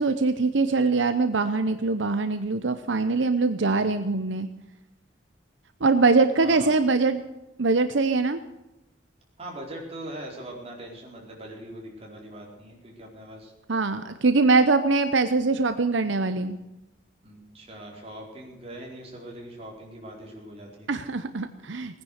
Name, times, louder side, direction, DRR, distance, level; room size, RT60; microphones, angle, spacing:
voice 1, 0.0-4.5 5.8-7.2 7.6-8.4 13.7-16.6 20.9-22.0, right 3 dB, 80° right, 10 dB, 0.8 m, -23 dB
voice 2, 6.4-6.7 9.4-13.5 17.2-21.0, right 1 dB, 30° right, -1 dB, 4.4 m, -41 dB
18.5 x 10.0 x 6.5 m, 0.95 s
head